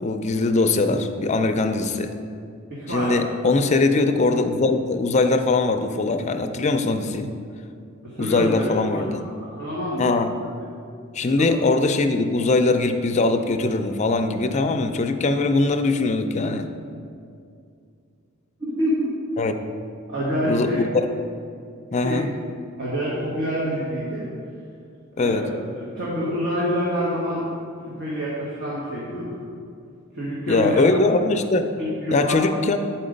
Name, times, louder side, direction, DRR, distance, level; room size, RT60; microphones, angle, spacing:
voice 1, 0.0-2.1 2.9-7.3 8.2-9.2 10.0-10.3 11.1-16.7 19.4-19.5 20.4-21.1 21.9-22.3 25.2-25.5 30.5-31.7 32.1-32.8, left 3 dB, 35° left, 7 dB, 0.4 m, -21 dB
voice 2, 2.7-3.2 8.0-8.7 9.6-10.1 11.4-11.5 18.6-19.1 20.1-20.8 21.9-22.2 22.8-24.3 25.2-27.5 27.9-29.3 30.1-30.8 31.8-32.4, equal, 55° right, -7 dB, 1.5 m, -27 dB
8.5 x 4.5 x 5.1 m, 2.4 s
head